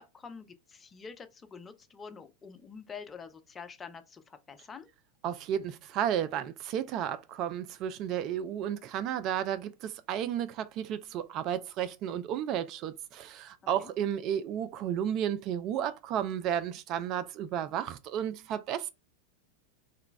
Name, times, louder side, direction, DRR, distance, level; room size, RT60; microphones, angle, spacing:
voice 1, 0.0-4.9 13.8-13.9, left 5 dB, 20° left, 0.5 m, -47 dB
voice 2, 5.2-18.9, right 9 dB, 35° right, 0.3 m, -33 dB
3.1 x 2.2 x 3.8 m
figure-of-eight pair, 90°, 0 cm